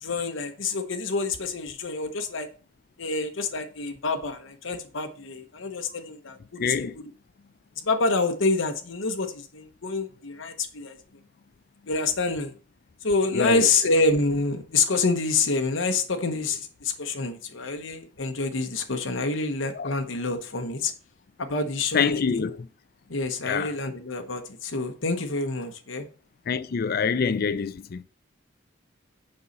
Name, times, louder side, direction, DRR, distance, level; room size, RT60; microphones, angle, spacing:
voice 1, 0.0-2.5 3.0-7.0 7.8-11.0 11.9-12.5 13.0-20.9 21.4-22.5 23.1-26.1, left 3 dB, 85° left, 1.0 m, -27 dB
voice 2, 6.6-7.0 13.3-13.7 19.7-19.9 21.9-22.7 23.4-23.7 26.5-28.0, left 5 dB, 50° left, 0.4 m, -26 dB
6.8 x 5.4 x 5.4 m
head